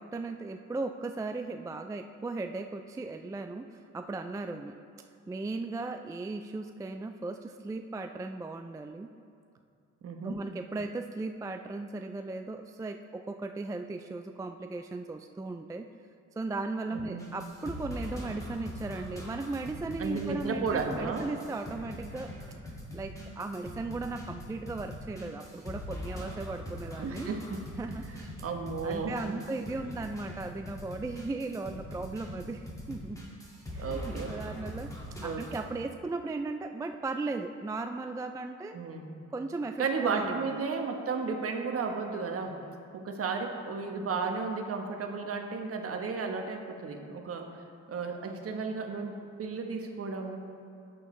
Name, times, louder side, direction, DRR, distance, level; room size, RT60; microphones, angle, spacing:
voice 1, 0.0-4.8 5.3-9.1 10.2-15.9 16.4-22.3 22.9-27.3 27.8-28.3 28.8-33.3 33.7-34.9 35.2-38.8 39.3-40.3, right 3 dB, 10° right, 6 dB, 0.3 m, -37 dB
voice 2, 10.0-10.4 16.9-17.3 20.0-21.3 27.0-27.7 28.4-29.4 33.8-34.4 35.2-35.4 38.7-39.1 39.8-42.6 42.9-50.4, right 4 dB, 50° right, 3 dB, 1.2 m, -34 dB
sound 1, 17.2-35.6, left 1 dB, 10° left, 2.2 m, -42 dB
13.5 x 8.9 x 3.3 m, 2.5 s
cardioid pair, 90°, 30 cm